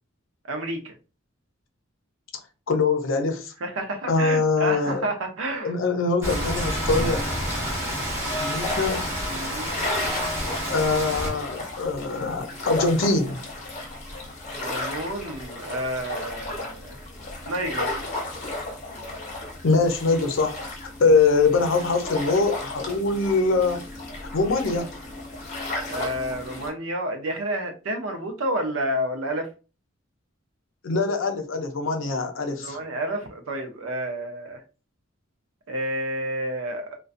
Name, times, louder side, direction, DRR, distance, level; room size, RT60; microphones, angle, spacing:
voice 1, 0.5-0.9 3.6-5.8 9.3-9.7 14.6-17.0 17.4-17.9 23.6-23.8 25.9-29.5 32.6-34.6 35.7-37.0, right 1 dB, 75° right, 0.6 m, -30 dB
voice 2, 2.7-3.5 4.1-5.1 5.6-7.2 8.4-9.1 10.7-13.4 19.6-23.8 24.3-24.9 30.8-32.8, left 3 dB, 65° left, 0.5 m, -23 dB
Rain, 6.2-11.3, equal, 10° right, 0.8 m, -28 dB
sound 1, 8.6-26.7, left 2 dB, 35° left, 0.8 m, -34 dB
2.4 x 2.2 x 2.5 m
head